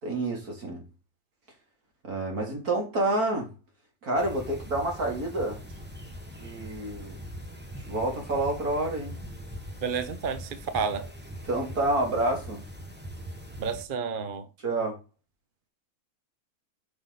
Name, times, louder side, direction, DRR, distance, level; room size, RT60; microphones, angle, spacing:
voice 1, 0.0-0.8 2.0-3.5 4.0-5.6 6.4-7.2 7.9-9.2 11.5-12.6 14.6-15.0, right 2 dB, 75° right, 3.6 m, -28 dB
sound 1, 4.2-13.8, equal, 5° right, 1.3 m, -41 dB
voice 2, 9.8-11.1 13.6-14.5, right 5 dB, 40° right, 0.9 m, -30 dB
10.0 x 6.0 x 4.1 m
omnidirectional pair, 1.6 m